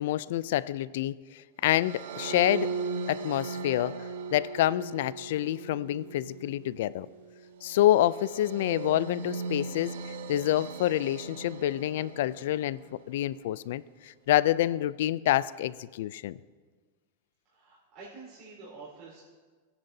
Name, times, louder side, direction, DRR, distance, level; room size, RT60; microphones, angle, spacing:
voice 1, 0.0-2.7 3.1-7.1 7.6-12.8 13.1-16.4, left 13 dB, 70° left, 19 dB, 0.3 m, -27 dB
sound 1, 1.7-13.0, right 4 dB, 80° right, 0.8 m, -38 dB
voice 2, 17.5-19.2, right 3 dB, 45° right, -9 dB, 3.9 m, -48 dB
17.5 x 10.0 x 2.7 m, 1.4 s
supercardioid pair, 135°, 0 cm